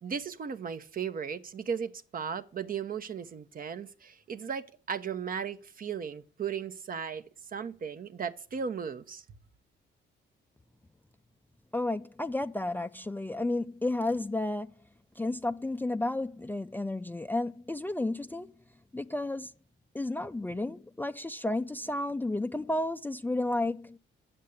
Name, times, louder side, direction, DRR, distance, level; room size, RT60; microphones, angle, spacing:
voice 1, 0.0-9.2, right 6 dB, 45° right, 0.9 m, -36 dB
voice 2, 11.7-14.7 15.2-18.5 18.9-19.5 19.9-24.0, left 2 dB, 10° left, 0.5 m, -32 dB
9.9 x 6.7 x 8.4 m
cardioid pair, 90°, 20 cm